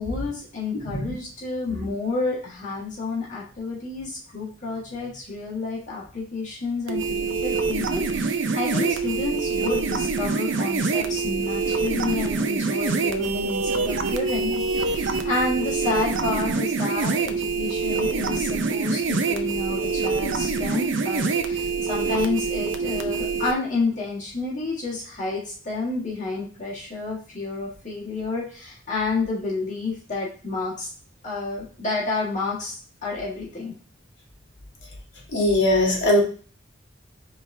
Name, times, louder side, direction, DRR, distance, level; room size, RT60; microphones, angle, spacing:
voice 1, 0.0-30.9 31.2-33.7, left 3 dB, 40° left, -5 dB, 1.7 m, -30 dB
sound 1, 6.9-23.5, right 4 dB, 70° right, 0.5 m, -25 dB
voice 2, 35.3-36.2, left 1 dB, 65° left, -1 dB, 1.4 m, -20 dB
5.0 x 3.5 x 2.7 m, 0.41 s
head